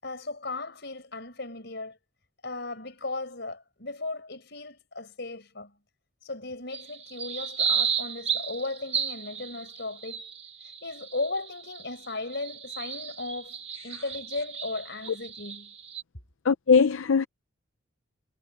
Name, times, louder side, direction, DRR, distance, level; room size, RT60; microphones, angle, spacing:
voice 1, 0.0-2.0 2.4-5.7 6.2-10.3 10.8-13.6 13.8-15.7, left 2 dB, 55° left, 5.7 m, -36 dB
sound 1, 6.7-16.0, right 7 dB, 30° right, 1.4 m, -34 dB
voice 2, 16.4-17.3, left 5 dB, 80° left, 0.5 m, -21 dB
head